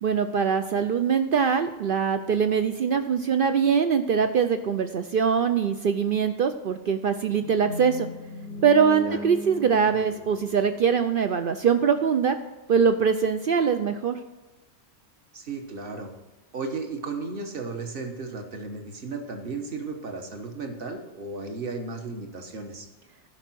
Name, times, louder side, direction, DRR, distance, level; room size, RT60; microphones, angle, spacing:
voice 1, 0.0-8.1 8.6-12.4 12.7-14.2, right 6 dB, 70° right, 8 dB, 0.5 m, -23 dB
sound 1, 7.3-11.5, left 1 dB, 50° left, 0.7 m, -38 dB
voice 2, 15.3-16.1 16.5-22.9, right 4 dB, 45° right, 4 dB, 1.3 m, -34 dB
11.5 x 5.5 x 6.0 m, 1.1 s
omnidirectional pair, 1.5 m